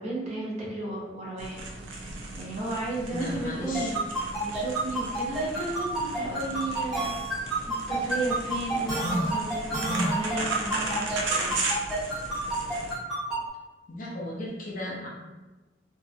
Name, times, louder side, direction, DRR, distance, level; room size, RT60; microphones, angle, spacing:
voice 1, 0.0-1.7 2.0-4.0 4.4-11.6, right 2 dB, 35° right, -5 dB, 0.6 m, -34 dB
sound 1, 1.4-12.9, right 2 dB, 85° right, 0.5 m, -36 dB
voice 2, 3.1-3.9 13.9-15.1, left 1 dB, 45° left, -3 dB, 0.5 m, -35 dB
sound 2, 3.7-13.4, right 1 dB, ahead, 0.7 m, -29 dB
2.6 x 2.2 x 2.4 m, 1.2 s
head